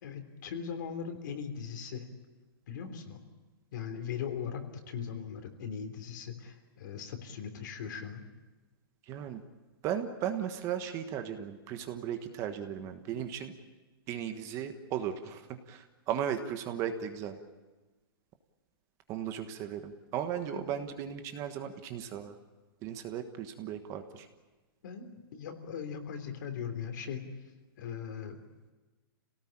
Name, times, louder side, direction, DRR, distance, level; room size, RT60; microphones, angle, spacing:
voice 1, 0.0-2.1 2.7-3.2 3.7-8.2 20.5-20.7 24.8-27.3 27.8-28.4, left 7 dB, 55° left, 6 dB, 3.4 m, -39 dB
voice 2, 9.1-9.4 9.8-13.5 14.1-17.4 19.1-22.3 22.8-24.3, right 9 dB, 25° right, 8 dB, 1.4 m, -36 dB
27.0 x 18.0 x 8.8 m, 1.2 s
hypercardioid pair, 165°, 12 cm